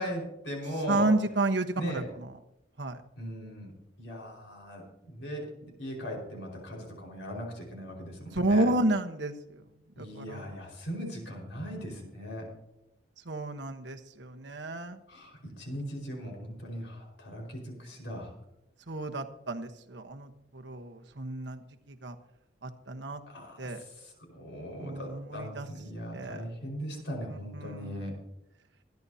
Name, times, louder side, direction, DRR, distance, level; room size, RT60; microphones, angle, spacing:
voice 1, 0.0-1.1 1.8-2.1 3.2-3.7 4.0-8.7 9.9-12.5 15.1-18.3 23.3-28.1, equal, 80° left, 1 dB, 5.0 m, -39 dB
voice 2, 0.9-2.3 2.8-2.9 8.3-9.3 10.0-10.5 13.3-15.0 18.9-21.6 21.9-22.1 22.6-23.2 23.6-23.8 24.8-25.7 26.1-26.4 27.5-28.0, right 2 dB, 70° right, 5 dB, 1.2 m, -31 dB
25.0 x 10.5 x 2.8 m, 0.86 s
head